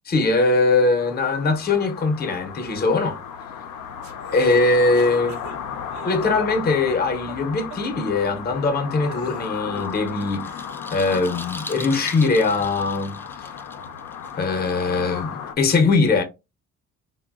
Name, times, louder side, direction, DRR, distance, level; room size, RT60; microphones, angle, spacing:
voice 1, 0.1-3.2 4.3-5.4 6.0-10.5 10.9-13.2 14.4-16.2, left 3 dB, 30° left, 0.7 m, -21 dB
sound 1, 1.0-15.5, left 7 dB, 70° left, 0.5 m, -35 dB
sound 2, 4.0-6.6 6.9-7.4 7.7-7.8 8.4-8.5 9.0-10.0 10.4-12.3, right 6 dB, 75° right, 0.6 m, -42 dB
sound 3, 9.4-15.2, left 2 dB, 10° left, 0.3 m, -40 dB
3.7 x 2.1 x 2.3 m
cardioid pair, 90°, 30 cm